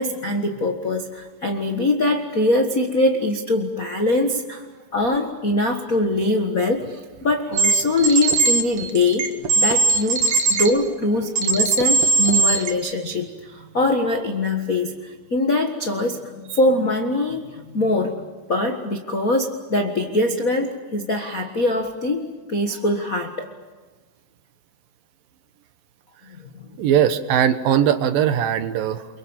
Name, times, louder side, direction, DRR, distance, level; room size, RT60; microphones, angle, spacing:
voice 1, 0.0-4.6 4.9-9.3 9.5-23.5, left 2 dB, 70° left, 4 dB, 0.8 m, -23 dB
sound 1, 7.5-10.7 11.4-12.7, right 3 dB, 50° right, 1.9 m, -19 dB
voice 2, 26.8-29.1, right 9 dB, 70° right, 10 dB, 2.8 m, -19 dB
29.5 x 23.5 x 7.2 m, 1.3 s
omnidirectional pair, 4.4 m